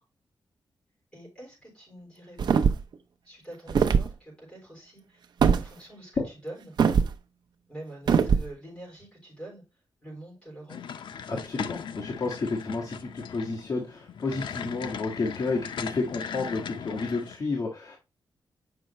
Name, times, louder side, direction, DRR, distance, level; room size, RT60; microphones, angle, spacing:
voice 1, 1.1-2.8 3.2-5.2 5.5-6.7 7.7-9.6 10.0-10.8, right 1 dB, 15° left, -4 dB, 4.9 m, -45 dB
sound 1, 2.4-2.9 3.7-4.1 5.4-5.7 6.8-7.1 8.1-8.5, right 6 dB, 60° right, 0.6 m, -21 dB
sound 2, 10.7-17.4, left 7 dB, 80° left, 0.6 m, -38 dB
voice 2, 11.3-18.0, left 3 dB, 45° left, -3 dB, 1.6 m, -31 dB
7.6 x 5.5 x 3.0 m, 0.25 s
wide cardioid pair, 165°, 8 cm